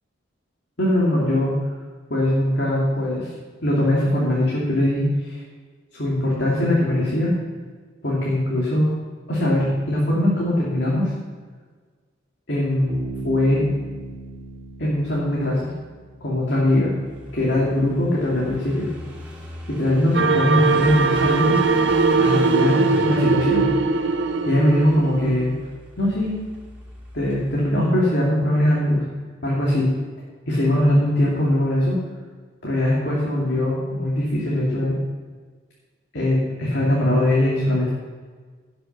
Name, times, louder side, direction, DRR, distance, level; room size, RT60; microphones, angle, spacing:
voice 1, 0.8-1.5 2.1-3.3 3.6-5.4 5.9-7.3 8.0-8.9 9.3-11.1 12.5-13.6 14.8-15.7 16.2-16.9 17.3-18.9 19.8-21.6 22.2-23.7 24.5-25.5 26.0-26.4 27.1-29.0 29.4-29.9 30.5-32.0 32.6-34.9 36.1-37.9, left 1 dB, 60° left, -5 dB, 2.7 m, -21 dB
Bass guitar, 12.9-16.6, right 2 dB, 40° right, 2.9 m, -37 dB
Car passing by / Idling, 17.0-27.7, equal, 5° right, 2.5 m, -36 dB
sound 1, 20.1-25.5, right 4 dB, 65° right, 0.7 m, -20 dB
16.0 x 6.9 x 6.1 m, 1.5 s
head